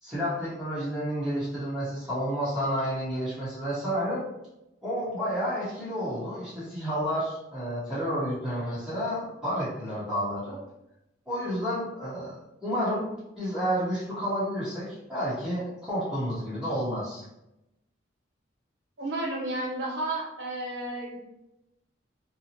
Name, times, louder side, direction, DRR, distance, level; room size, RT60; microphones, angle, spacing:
voice 1, 0.0-4.2 4.8-10.6 11.3-12.3 12.6-13.1 13.4-17.2, equal, 5° right, -12 dB, 0.9 m, -30 dB
voice 2, 19.0-21.2, right 2 dB, 80° right, -3 dB, 0.9 m, -32 dB
2.7 x 2.0 x 2.7 m, 0.89 s
head